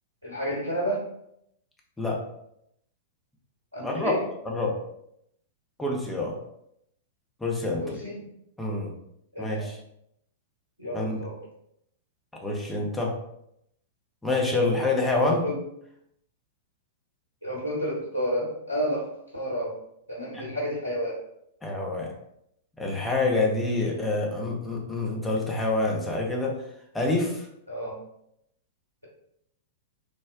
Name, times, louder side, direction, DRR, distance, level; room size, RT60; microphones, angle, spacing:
voice 1, 0.2-1.0 3.7-4.2 7.8-8.2 9.3-9.7 10.8-11.4 15.2-15.6 17.4-19.1 19.3-19.7 20.1-21.1 27.7-28.0, equal, 85° right, -5 dB, 0.8 m, -30 dB
voice 2, 5.8-6.4 7.4-8.0 8.6-8.9 9.4-9.8 10.9-11.2 12.4-13.2 14.2-15.4 20.3-20.5 21.6-22.1 22.8-26.6 26.9-27.5, left 2 dB, 10° left, -2 dB, 0.6 m, -27 dB
3.5 x 2.1 x 2.2 m, 0.77 s
figure-of-eight pair, 100°, 0 cm